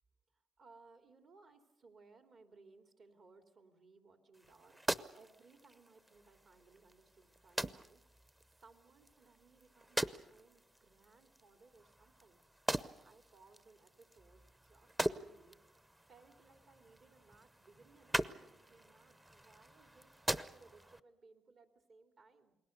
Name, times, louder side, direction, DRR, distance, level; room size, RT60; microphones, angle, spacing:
voice 1, 0.3-8.2 8.5-12.4 12.8-15.6 15.9-22.6, right 3 dB, 55° right, 6 dB, 3.0 m, -64 dB
sound 1, 4.3-21.0, right 1 dB, 15° right, 0.8 m, -43 dB
29.0 x 20.5 x 6.7 m, 0.93 s
cardioid pair, 90°, 0 cm